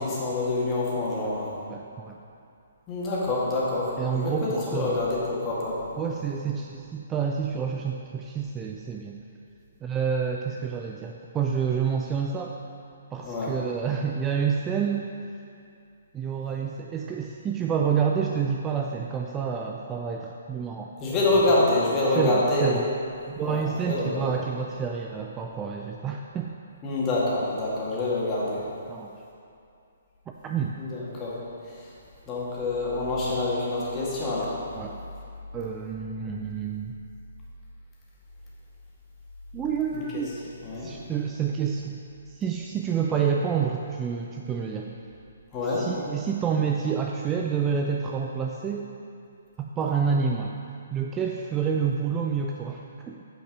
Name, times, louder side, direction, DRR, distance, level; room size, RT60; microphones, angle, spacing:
voice 1, 0.0-1.5 2.9-5.8 13.2-13.5 21.0-22.7 23.4-24.3 26.8-28.6 30.8-31.4 31.6-31.9 32.3-34.6 39.9-40.2 40.6-40.9 45.5-45.9, left 2 dB, 20° left, -7 dB, 2.1 m, -26 dB
voice 2, 1.7-2.2 4.0-5.0 6.0-9.2 9.8-12.5 13.1-15.1 16.1-21.0 22.2-22.9 23.3-26.5 28.9-29.1 30.3-30.7 34.8-35.0 35.5-36.9 39.5-40.3 40.8-42.0 42.3-44.9 45.8-48.9 49.6-50.5 50.9-53.2, right 6 dB, 15° right, 1 dB, 0.4 m, -28 dB
8.8 x 5.3 x 5.1 m, 2.5 s
figure-of-eight pair, 130°, 0 cm